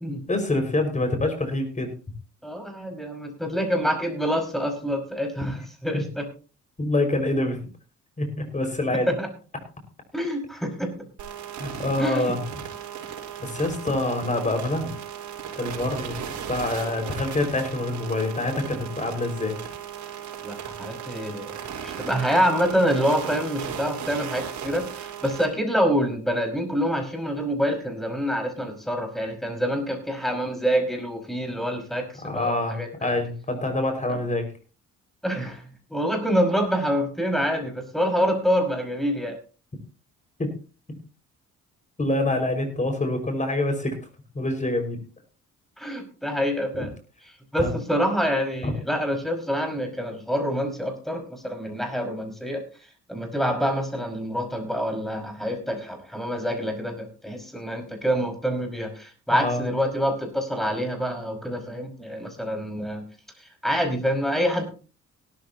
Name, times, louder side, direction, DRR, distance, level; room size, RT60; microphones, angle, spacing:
voice 1, 0.3-1.9 5.9-6.0 6.8-7.7 8.2-8.3 8.5-9.1 11.6-12.6 13.4-15.0 15.6-19.6 32.2-34.4 40.4-40.5 42.0-44.0 44.3-45.0 46.7-46.9 47.6-47.7 48.6-48.7 59.3-59.6, left 2 dB, 25° left, 6 dB, 5.5 m, -26 dB
voice 2, 2.4-6.2 9.1-9.3 10.1-10.9 12.0-12.4 20.4-33.1 34.1-34.2 35.2-39.4 45.8-46.9 47.5-52.6 53.1-63.0 63.6-64.6, equal, ahead, 4 dB, 5.4 m, -26 dB
sound 1, 11.2-25.5, right 8 dB, 70° right, 4.3 m, -36 dB
17.5 x 13.5 x 2.9 m, 0.35 s
cardioid pair, 90°, 30 cm